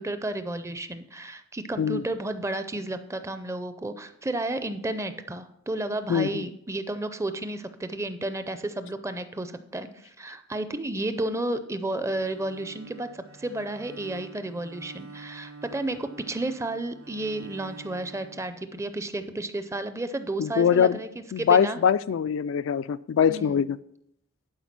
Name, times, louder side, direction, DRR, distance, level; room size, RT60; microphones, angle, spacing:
voice 1, 0.0-21.1 21.4-21.8 23.3-23.6, right 2 dB, 15° right, 10 dB, 0.5 m, -32 dB
voice 2, 6.1-6.4 20.4-21.0 21.3-23.8, left 7 dB, 60° left, 14 dB, 0.3 m, -23 dB
Bowed string instrument, 12.0-19.2, right 4 dB, 85° right, 1.0 m, -47 dB
11.0 x 4.9 x 5.9 m, 0.77 s
head